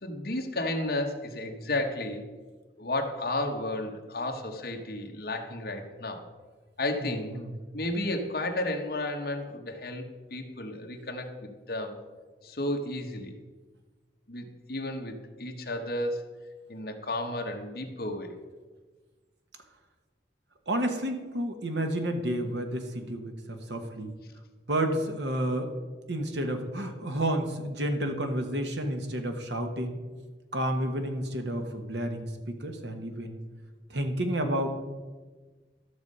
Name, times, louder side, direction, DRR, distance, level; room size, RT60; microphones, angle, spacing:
voice 1, 0.0-2.2 2.8-6.2 6.8-7.3 7.7-10.0 10.3-12.0 12.4-13.4 14.3-16.2 16.7-18.3, left 1 dB, 55° left, 2 dB, 1.3 m, -32 dB
voice 2, 7.0-7.5 20.7-24.1 24.7-25.7 26.1-30.0 30.5-33.4 33.9-34.7, right 1 dB, 75° right, 5 dB, 1.3 m, -30 dB
13.0 x 6.4 x 5.4 m, 1.3 s
head